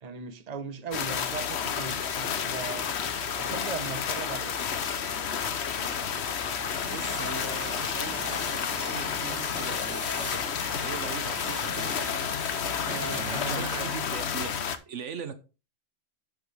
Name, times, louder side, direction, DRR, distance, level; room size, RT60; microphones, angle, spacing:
voice 1, 0.0-2.9 3.4-4.6 12.8-13.9, right 5 dB, 35° right, 1.0 m, -38 dB
sound 1, 0.9-14.8, left 7 dB, 65° left, 1.1 m, -31 dB
sound 2, 1.0-14.3, left 2 dB, 10° left, 1.4 m, -40 dB
voice 2, 6.9-12.3 13.1-14.5 14.9-15.3, right 7 dB, 75° right, 1.2 m, -40 dB
11.0 x 6.9 x 3.3 m
omnidirectional pair, 1.3 m